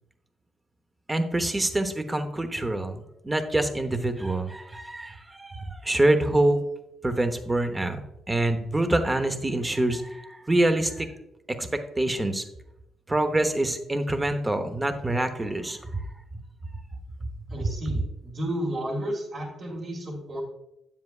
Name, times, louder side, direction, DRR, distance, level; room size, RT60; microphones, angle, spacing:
voice 1, 1.1-6.6 7.0-8.0 8.3-11.1 11.5-12.4 13.1-16.0 17.6-17.7, right 1 dB, 15° right, 8 dB, 0.9 m, -26 dB
voice 2, 17.5-20.4, equal, 45° right, -4 dB, 2.2 m, -32 dB
9.4 x 7.4 x 2.4 m, 0.85 s
cardioid pair, 90°, 0 cm